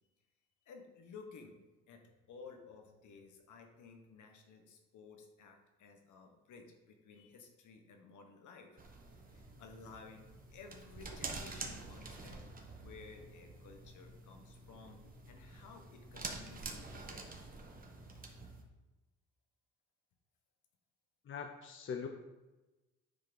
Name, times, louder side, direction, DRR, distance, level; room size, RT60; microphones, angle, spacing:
voice 1, 0.6-1.6 1.9-8.8 9.2-12.5 12.8-15.0 15.3-17.3, left 4 dB, 65° left, 4 dB, 1.5 m, -55 dB
sound 1, 8.8-18.6, right 3 dB, 25° right, 1.3 m, -48 dB
voice 2, 21.2-22.1, left 6 dB, 40° left, 4 dB, 0.8 m, -42 dB
9.8 x 3.7 x 5.3 m, 1.1 s
cardioid pair, 95°, 32 cm